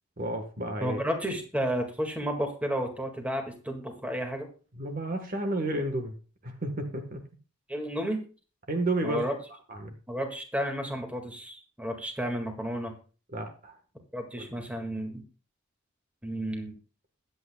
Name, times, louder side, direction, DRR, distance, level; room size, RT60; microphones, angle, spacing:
voice 1, 0.2-1.0 4.7-6.1 6.4-7.2 8.7-9.2 9.7-9.9 13.3-13.8 14.4-14.5, right 2 dB, 45° right, 5 dB, 1.3 m, -31 dB
voice 2, 0.8-4.5 7.7-8.2 9.0-9.3 10.1-13.0 14.1-15.2 16.2-16.7, equal, 5° right, 3 dB, 1.9 m, -32 dB
21.5 x 8.2 x 2.3 m, 0.36 s
head